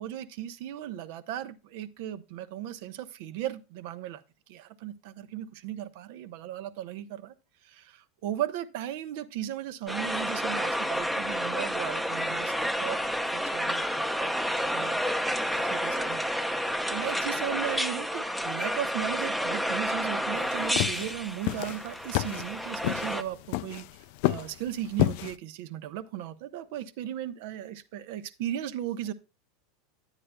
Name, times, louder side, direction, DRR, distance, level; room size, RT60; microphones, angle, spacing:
voice 1, 0.0-4.2 4.5-7.3 7.6-15.0 15.6-23.9 24.2-29.1, right 11 dB, 65° right, 0.8 m, -36 dB
sound 1, 9.9-23.2, equal, ahead, 0.7 m, -30 dB
sound 2, 20.4-25.3, left 18 dB, 65° left, 0.3 m, -30 dB
9.9 x 9.0 x 2.2 m
hypercardioid pair, 95°, 0 cm